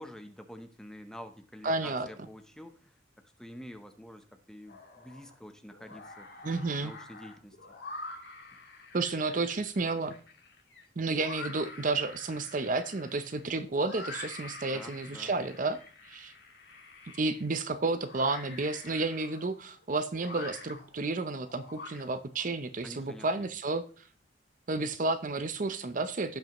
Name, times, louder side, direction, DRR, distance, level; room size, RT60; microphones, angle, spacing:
voice 1, 0.0-6.5 6.8-7.6 10.0-10.2 14.7-15.4 22.8-23.5, equal, 5° left, 7 dB, 0.8 m, -48 dB
voice 2, 1.6-2.1 6.4-6.9 8.9-10.2 11.0-15.8 16.1-16.3 17.2-23.8 24.7-26.4, right 3 dB, 45° right, 10 dB, 0.6 m, -31 dB
sound 1, 4.7-5.3 5.7-22.4, left 3 dB, 60° left, 2.0 m, -47 dB
16.5 x 5.5 x 3.0 m, 0.39 s
head